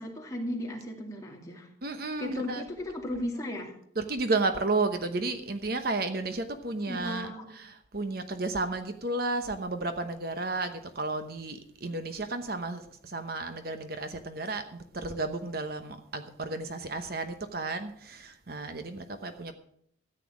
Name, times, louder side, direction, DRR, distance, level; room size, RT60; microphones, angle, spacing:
voice 1, 0.0-1.7 2.2-3.7 6.9-7.6, left 1 dB, 20° left, -1 dB, 2.5 m, -36 dB
voice 2, 1.8-2.6 4.0-19.5, right 3 dB, 50° right, 8 dB, 1.0 m, -32 dB
13.5 x 9.3 x 6.2 m, 0.67 s
head